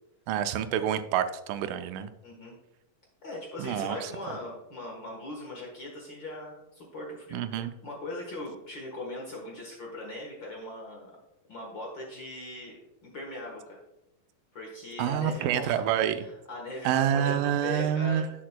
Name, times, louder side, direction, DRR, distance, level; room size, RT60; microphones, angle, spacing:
voice 1, 0.3-2.1 3.6-4.1 7.3-7.7 15.0-16.2 16.9-18.3, right 10 dB, 90° right, 9 dB, 2.2 m, -27 dB
voice 2, 2.2-2.5 3.2-11.1 11.5-13.8 14.5-15.8 16.1-18.3, left 1 dB, 50° left, -1 dB, 1.4 m, -40 dB
10.0 x 7.5 x 2.2 m, 0.90 s
omnidirectional pair, 3.7 m